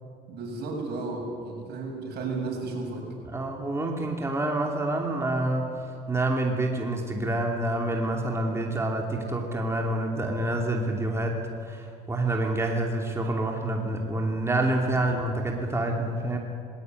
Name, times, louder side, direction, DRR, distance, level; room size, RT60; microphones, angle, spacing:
voice 1, 0.3-3.0, right 3 dB, 75° right, 1 dB, 7.0 m, -33 dB
voice 2, 3.3-16.4, right 1 dB, 15° right, 1 dB, 2.9 m, -27 dB
20.5 x 18.0 x 9.4 m, 2.4 s
cardioid pair, 110°, 17 cm